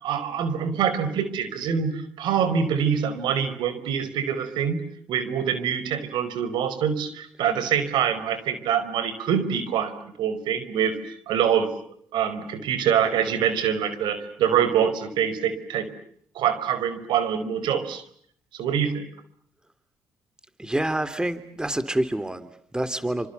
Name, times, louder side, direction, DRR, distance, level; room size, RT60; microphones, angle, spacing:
voice 1, 0.0-4.8 5.1-11.7 12.1-15.9 16.3-18.0 18.5-19.1, right 8 dB, 80° right, 13 dB, 5.1 m, -25 dB
voice 2, 20.6-23.3, right 1 dB, 10° right, 12 dB, 3.1 m, -27 dB
29.5 x 27.5 x 7.0 m, 0.65 s
supercardioid pair, 70°, 8 cm